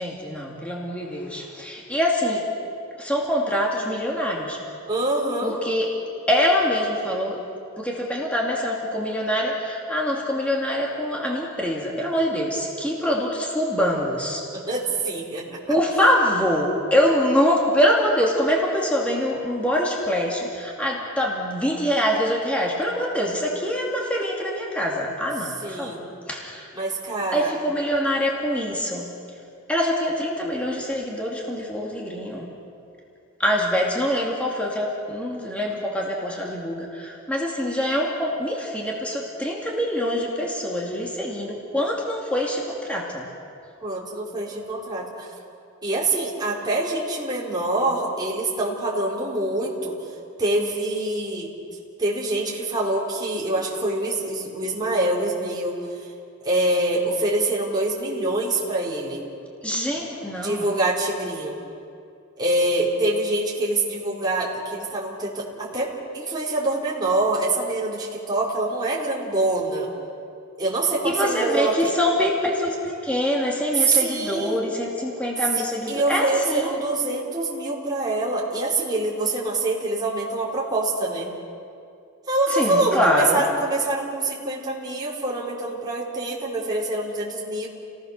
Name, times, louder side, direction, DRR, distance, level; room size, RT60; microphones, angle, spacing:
voice 1, 0.0-2.5 3.0-4.6 5.4-5.9 6.3-7.4 7.8-14.5 15.7-26.7 27.3-29.1 29.7-32.5 33.4-43.3 59.6-60.6 71.0-76.8 82.5-83.4, equal, 5° left, -2 dB, 2.5 m, -24 dB
voice 2, 4.9-5.5 14.5-15.6 25.6-26.0 26.7-27.5 43.8-45.3 45.8-49.9 50.4-51.5 52.0-55.8 56.4-59.2 60.3-61.6 62.4-69.9 70.6-71.9 73.7-74.6 75.9-81.3 82.3-87.7, right 2 dB, 20° right, -5 dB, 4.4 m, -25 dB
30.0 x 19.0 x 6.6 m, 2.5 s
head